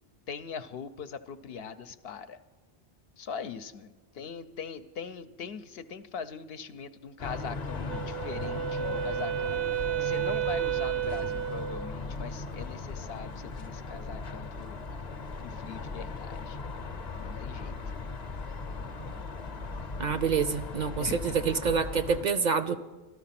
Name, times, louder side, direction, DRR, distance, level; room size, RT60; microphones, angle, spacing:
voice 1, 0.3-2.4 3.2-14.8 15.4-16.6 17.2-17.7 21.0-21.4, left 6 dB, 75° left, 11 dB, 0.9 m, -41 dB
sound 1, 7.2-22.2, left 3 dB, 45° left, 0.8 m, -38 dB
Wind instrument woodwind instrument, 7.9-11.9, right 12 dB, 75° right, 0.9 m, -31 dB
voice 2, 20.0-22.8, right 6 dB, 55° right, 13 dB, 0.6 m, -27 dB
13.0 x 12.5 x 5.8 m, 1.2 s
omnidirectional pair, 1.0 m